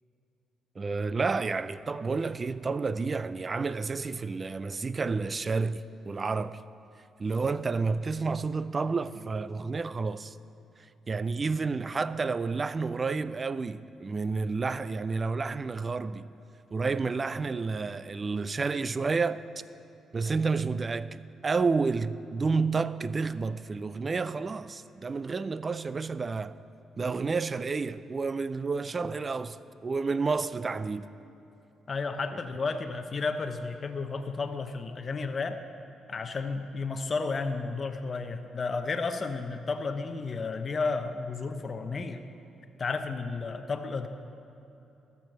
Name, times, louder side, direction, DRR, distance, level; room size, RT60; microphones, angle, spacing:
voice 1, 0.8-6.6 7.2-10.4 11.1-16.3 16.7-19.5 20.1-26.6 27.0-31.1, right 4 dB, 30° right, 0.3 m, -30 dB
voice 2, 31.9-35.6 36.1-42.2 42.8-44.1, left 4 dB, 40° left, 0.7 m, -32 dB
13.0 x 7.0 x 6.3 m
cardioid pair, 90°, 0 cm